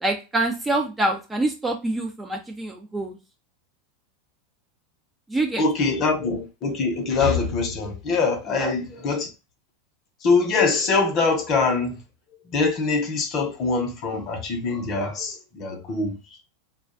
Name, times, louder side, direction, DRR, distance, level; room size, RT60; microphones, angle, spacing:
voice 1, 0.0-3.2 5.3-5.6 8.5-8.7, right 2 dB, 10° right, 0.3 m, -25 dB
voice 2, 5.6-9.3 10.2-12.0 12.5-16.2, left 4 dB, 35° left, 0.6 m, -23 dB
2.4 x 2.1 x 2.4 m
supercardioid pair, 140°, 0 cm